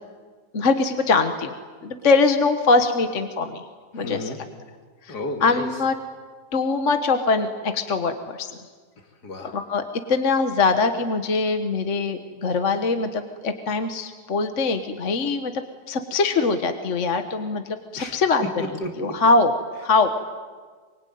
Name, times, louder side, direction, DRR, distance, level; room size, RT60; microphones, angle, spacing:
voice 1, 0.5-1.5 1.8-3.6 3.9-4.3 5.0-5.2 5.4-5.9 6.5-8.5 9.4-18.4 19.0-19.5 19.8-20.1, left 4 dB, 45° left, 7 dB, 1.5 m, -22 dB
voice 2, 4.0-4.4 5.1-5.7 9.2-9.5 18.0-18.2 18.6-19.1, left 1 dB, 60° left, 4 dB, 2.9 m, -32 dB
24.5 x 23.5 x 9.4 m, 1.5 s
omnidirectional pair, 2.0 m